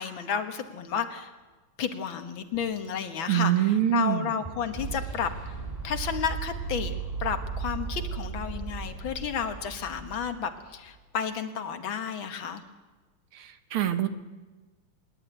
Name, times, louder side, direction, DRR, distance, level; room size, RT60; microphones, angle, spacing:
voice 1, 0.0-1.3 1.8-5.5 5.8-12.6, left 7 dB, 65° left, 8 dB, 2.0 m, -32 dB
sound 1, 2.5-10.7, right 5 dB, 10° right, 3.1 m, -37 dB
voice 2, 3.3-4.3 13.3-14.1, right 12 dB, 75° right, 9 dB, 2.1 m, -25 dB
25.0 x 11.5 x 9.2 m, 1.3 s
omnidirectional pair, 2.4 m